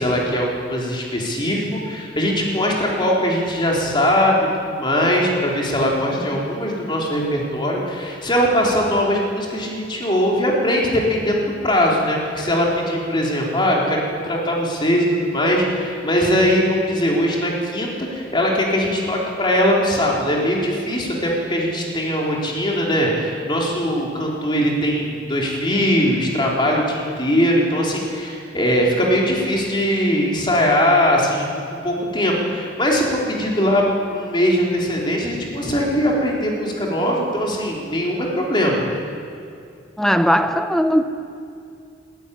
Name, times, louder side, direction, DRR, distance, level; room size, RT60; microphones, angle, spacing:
voice 1, 0.0-33.8 34.1-38.8, equal, 25° left, -2 dB, 3.7 m, -20 dB
voice 2, 40.0-41.0, equal, ahead, 9 dB, 0.8 m, -18 dB
21.0 x 13.0 x 9.9 m, 2.5 s
head